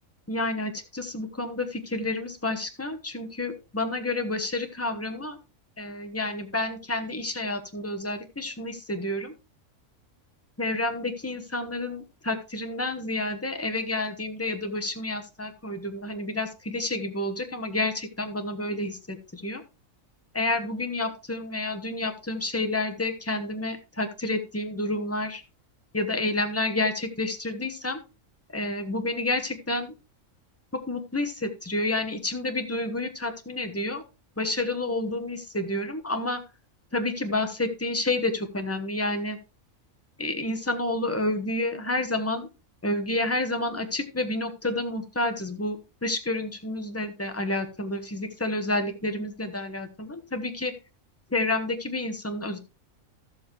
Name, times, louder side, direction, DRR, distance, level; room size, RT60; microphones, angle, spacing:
voice 1, 0.3-5.4 5.8-9.3 10.6-19.6 20.3-25.4 25.9-28.0 28.5-29.9 30.7-34.0 34.4-36.4 36.9-39.4 40.2-42.5 42.8-45.8 46.0-50.7 51.3-52.6, left 2 dB, 10° left, 6 dB, 1.1 m, -29 dB
13.5 x 7.1 x 3.2 m, 0.29 s
omnidirectional pair, 1.4 m